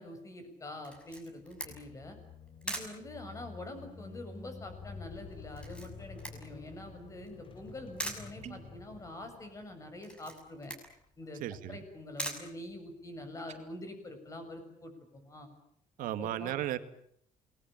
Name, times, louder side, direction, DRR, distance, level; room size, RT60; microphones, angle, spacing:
voice 1, 0.0-2.2 2.6-10.7 11.2-11.4 11.7-15.5 16.0-16.5, left 1 dB, 25° left, 7 dB, 7.1 m, -45 dB
Camera, 0.8-13.3, equal, 5° left, 6.5 m, -45 dB
sound 1, 1.4-10.2, left 4 dB, 40° left, 3.2 m, -50 dB
sound 2, 8.4-8.8 13.4-13.6, right 9 dB, 50° right, 3.8 m, -49 dB
voice 2, 11.4-11.8 16.0-16.8, right 12 dB, 90° right, 10 dB, 2.1 m, -35 dB
29.0 x 20.5 x 9.0 m, 0.69 s
cardioid pair, 145°, 14 cm